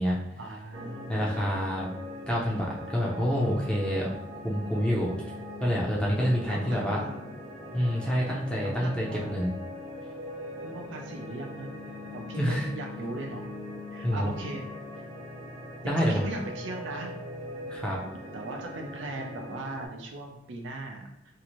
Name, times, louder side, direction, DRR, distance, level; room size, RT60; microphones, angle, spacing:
voice 1, 0.4-1.3 6.5-7.3 8.6-9.3 10.6-11.7 12.1-13.5 13.9-14.6 15.8-17.2 17.6-18.0 18.3-21.1, right 2 dB, 85° right, 2 dB, 0.5 m, -39 dB
sound 1, 0.7-19.9, left 1 dB, 45° right, 0.7 m, -41 dB
voice 2, 1.1-1.9 2.3-4.1 4.4-5.1 5.6-7.0 7.7-9.5 12.4-12.7 14.0-14.3 15.8-16.3 17.7-18.0, equal, 5° left, -4 dB, 0.5 m, -27 dB
2.8 x 2.5 x 3.0 m, 0.82 s
head